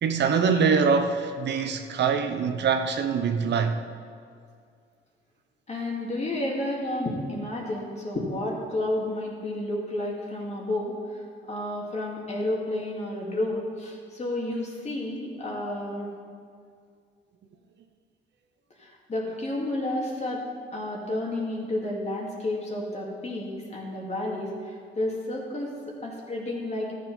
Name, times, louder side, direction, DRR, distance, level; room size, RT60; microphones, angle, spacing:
voice 1, 0.0-3.8, right 5 dB, 60° right, 0.8 m, -24 dB
voice 2, 5.7-16.1 18.8-20.4 20.7-26.9, left 1 dB, 35° left, 2.3 m, -31 dB
13.0 x 7.6 x 5.5 m
cardioid pair, 90°, 20 cm